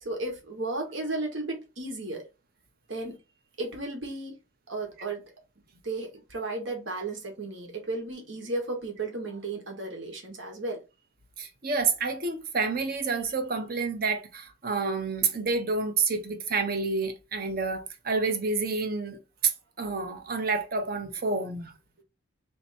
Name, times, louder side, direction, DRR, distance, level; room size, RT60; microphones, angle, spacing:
voice 1, 0.0-2.2 2.9-3.2 3.6-4.4 4.7-5.2 5.8-10.8, right 2 dB, 70° right, 1.5 m, -34 dB
voice 2, 11.4-21.7, right 4 dB, 50° right, 0.8 m, -29 dB
3.5 x 2.9 x 4.1 m
head